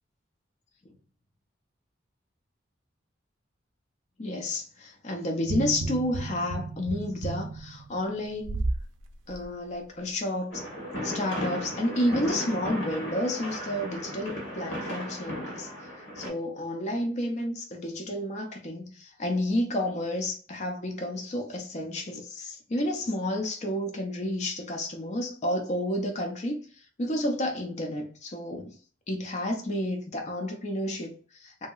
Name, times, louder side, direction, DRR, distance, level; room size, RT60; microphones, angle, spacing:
voice 1, 4.2-8.6 9.3-10.7 11.0-15.7 16.2-28.7 29.1-31.7, left 1 dB, 35° left, 0.5 m, -31 dB
sound 1, 5.4-8.9 9.3-9.5, right 2 dB, 80° right, 0.4 m, -33 dB
sound 2, 10.5-16.3, equal, 85° left, 1.2 m, -35 dB
2.8 x 2.7 x 2.3 m
head